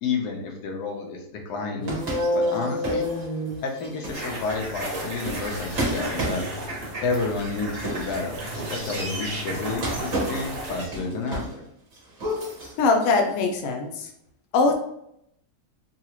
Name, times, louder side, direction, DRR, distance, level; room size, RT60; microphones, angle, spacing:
voice 1, 0.0-1.9 2.3-3.1 3.6-6.4 7.0-11.6, left 4 dB, 90° left, 1 dB, 1.3 m, -30 dB
sound 1, 1.7-4.3, left 1 dB, 35° left, 0.7 m, -28 dB
sound 2, 1.8-8.9 9.7-11.7 11.9-13.5, right 1 dB, 60° right, 1.6 m, -33 dB
sound 3, 4.1-10.9, right 1 dB, 80° right, 1.7 m, -33 dB
voice 2, 12.8-14.1 14.5-14.7, left 3 dB, 70° left, 3 dB, 1.0 m, -21 dB
3.9 x 2.4 x 2.9 m, 0.76 s
omnidirectional pair, 1.6 m